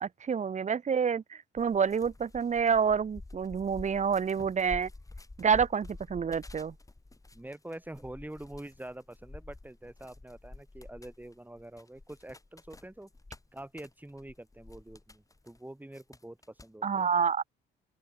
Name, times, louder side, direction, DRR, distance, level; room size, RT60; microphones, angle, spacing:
voice 1, 0.0-4.9 5.4-6.7 16.8-17.4, right 6 dB, 35° right, 1.0 m, -28 dB
sound 1, 1.6-15.6 15.9-16.7, left 2 dB, 15° left, 4.6 m, -49 dB
voice 2, 7.3-13.1 13.5-17.1, right 1 dB, 10° right, 7.1 m, -46 dB
open air
cardioid pair, 90°, 20 cm